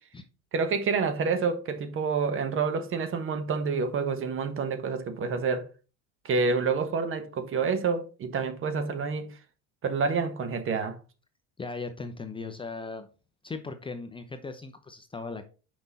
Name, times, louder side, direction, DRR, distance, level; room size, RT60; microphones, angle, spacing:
voice 1, 0.5-5.7 6.2-9.4 9.8-11.0, right 5 dB, 40° right, 1.3 m, -28 dB
voice 2, 11.6-13.1 13.4-15.5, left 4 dB, 15° left, 0.7 m, -38 dB
6.0 x 5.3 x 4.2 m
supercardioid pair, 115°, 33 cm